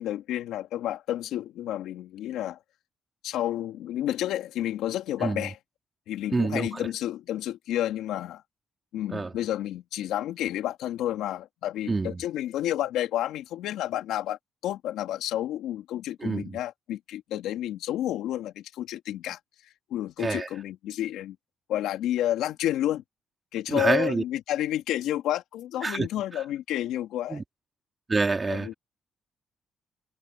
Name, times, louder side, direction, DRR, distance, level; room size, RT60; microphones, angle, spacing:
voice 1, 0.0-2.6 3.2-5.6 6.1-8.4 8.9-21.4 21.7-23.0 23.5-27.4 28.5-28.7, left 12 dB, 90° left, 2.5 m, -30 dB
voice 2, 6.3-6.8 9.1-9.3 11.9-12.2 16.2-16.6 20.2-20.5 23.7-24.2 25.8-26.1 27.3-27.4 28.1-28.7, right 3 dB, 25° right, 2.7 m, -27 dB
cardioid pair, 90°, 0 cm